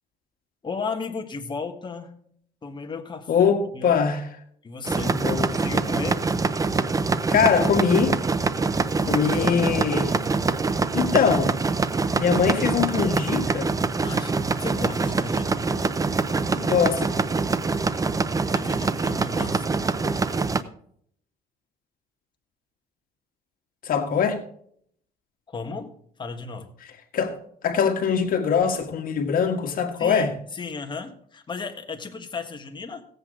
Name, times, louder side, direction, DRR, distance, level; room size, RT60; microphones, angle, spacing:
voice 1, 0.6-2.3 2.6-3.5 3.7-4.0 4.6-5.2 5.5-6.3 9.1-9.8 14.0-15.7 18.5-20.1 25.5-26.7 30.0-33.0, left 4 dB, 25° left, 1.6 m, -35 dB
voice 2, 3.3-4.2 5.0-5.5 7.3-8.2 9.0-10.1 10.9-11.5 12.2-13.7 16.5-17.1 23.8-24.4 27.1-27.4 27.6-30.3, left 6 dB, 55° left, 1.8 m, -22 dB
sound 1, 4.9-20.6, right 4 dB, 20° right, 0.6 m, -24 dB
17.0 x 8.1 x 3.8 m
cardioid pair, 110°, 17 cm